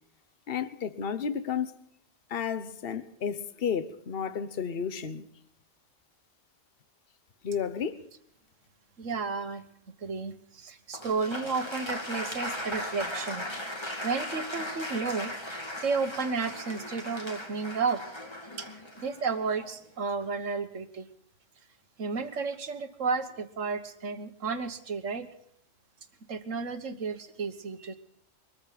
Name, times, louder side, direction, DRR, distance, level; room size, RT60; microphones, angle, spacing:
voice 1, 0.5-1.7 2.3-5.3 7.4-8.0, left 7 dB, 50° left, 1.2 m, -32 dB
voice 2, 9.0-9.7 10.0-13.5 14.0-15.3 15.8-18.0 18.6-18.7 19.0-21.1 22.0-25.3 26.3-28.0, right 4 dB, 65° right, 1.6 m, -32 dB
Applause, 10.9-19.9, left 1 dB, 20° left, 2.5 m, -38 dB
23.0 x 14.0 x 4.1 m
omnidirectional pair, 1.4 m